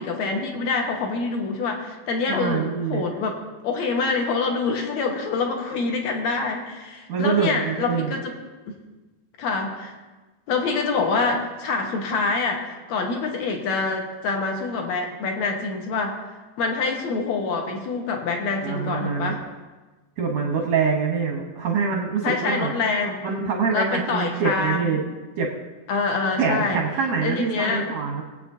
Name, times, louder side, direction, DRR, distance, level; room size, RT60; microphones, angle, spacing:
voice 1, 0.0-3.3 3.6-8.3 8.7-8.8 9.4-10.0 10.5-16.2 16.6-19.4 22.2-23.2 23.7-25.0 25.9-26.8 27.2-28.0, left 4 dB, 70° left, 2 dB, 1.7 m, -26 dB
voice 2, 2.3-3.1 7.1-8.1 18.6-19.3 20.2-22.7 23.2-25.0 25.4-25.5 26.4-28.2, right 5 dB, 75° right, 0 dB, 1.6 m, -25 dB
22.5 x 8.2 x 2.7 m, 1.2 s
omnidirectional pair, 4.6 m